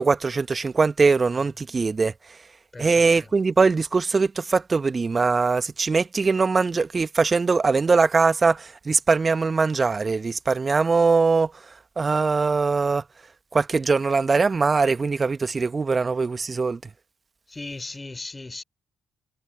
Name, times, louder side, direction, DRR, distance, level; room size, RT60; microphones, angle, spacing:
voice 1, 0.0-2.1 2.8-11.5 12.0-13.0 13.5-16.8, right 4 dB, 35° right, 1.8 m, -21 dB
voice 2, 2.7-3.1 17.5-18.6, left 2 dB, 20° left, 5.2 m, -37 dB
figure-of-eight pair, 40°, 0 cm